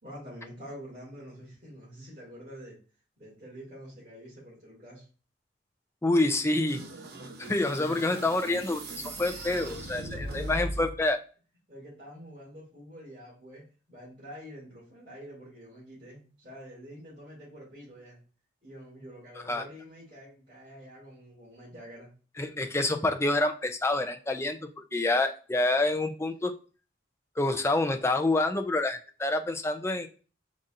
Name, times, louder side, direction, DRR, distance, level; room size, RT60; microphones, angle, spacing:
voice 1, 0.0-2.8 3.2-5.0 7.6-8.1 10.1-10.8 11.7-13.6 13.9-18.2 18.6-22.1, equal, 40° right, -10 dB, 2.6 m, -47 dB
voice 2, 6.0-6.8 7.4-11.2 19.5-19.6 22.4-26.5 27.4-30.1, left 2 dB, 15° left, 6 dB, 0.4 m, -27 dB
sound 1, 6.7-11.0, right 1 dB, 55° right, 0.8 m, -39 dB
4.9 x 4.1 x 2.5 m, 0.36 s
head